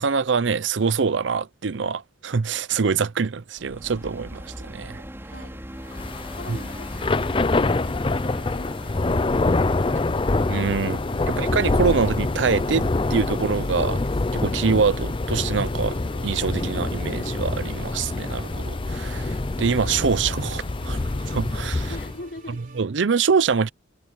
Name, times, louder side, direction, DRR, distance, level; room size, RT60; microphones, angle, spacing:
voice 1, 0.0-5.0 6.5-6.6 10.5-11.0 11.3-14.0 14.3-16.0 16.2-21.0 21.3-21.9 22.8-23.7, right 5 dB, 75° right, 0.6 m, -24 dB
sound 1, 3.6-14.0, equal, 15° right, 5.3 m, -42 dB
voice 2, 5.3-8.0 21.9-22.6, left 2 dB, 60° left, 4.2 m, -43 dB
Thunder / Rain, 5.9-22.2, left 2 dB, 30° left, 0.5 m, -25 dB
sound 2, 6.3-22.8, right 2 dB, 45° right, 4.2 m, -48 dB
head